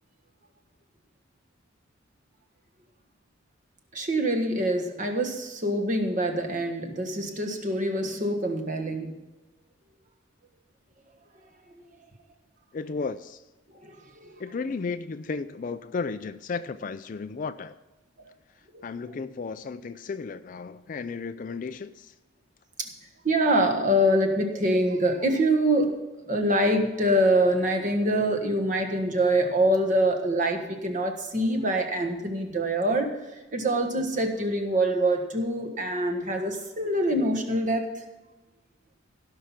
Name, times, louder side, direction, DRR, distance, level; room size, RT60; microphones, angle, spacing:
voice 1, 3.9-9.2 13.8-13.9 14.2-14.3 18.7-18.8 22.8-22.9 23.2-25.9 26.3-33.2 33.5-37.9, right 1 dB, 40° right, 1.5 m, -25 dB
voice 2, 12.7-13.4 14.4-17.8 18.8-22.1, left 4 dB, 40° left, 0.3 m, -34 dB
16.5 x 5.7 x 5.9 m
head